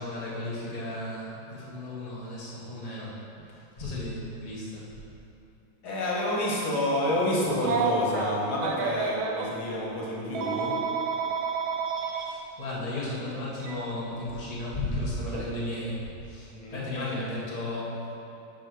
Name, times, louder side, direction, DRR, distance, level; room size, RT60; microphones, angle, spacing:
voice 1, 0.0-3.1 3.8-4.8 12.0-17.9, left 1 dB, 20° left, -7 dB, 1.5 m, -34 dB
voice 2, 5.8-10.8 16.5-16.9, left 1 dB, 85° left, -4 dB, 2.4 m, -29 dB
Telephone, 7.6-9.5 10.3-12.2 13.6-13.7 15.3-15.5, right 6 dB, 80° right, 1.6 m, -30 dB
6.5 x 5.6 x 6.3 m, 2.9 s
omnidirectional pair, 2.2 m